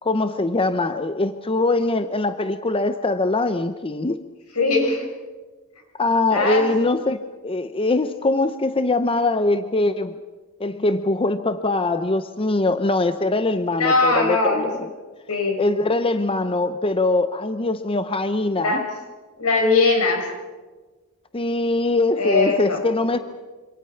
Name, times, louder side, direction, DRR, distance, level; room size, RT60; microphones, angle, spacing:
voice 1, 0.0-4.2 6.0-10.2 10.6-14.9 15.6-18.8 21.3-23.2, left 2 dB, 25° left, 10 dB, 0.8 m, -22 dB
voice 2, 4.6-5.0 6.3-6.6 13.8-14.7 15.3-15.6 18.6-18.9 19.4-20.3 22.2-22.8, left 3 dB, 80° left, 3 dB, 5.9 m, -20 dB
26.5 x 26.0 x 5.8 m, 1.3 s
head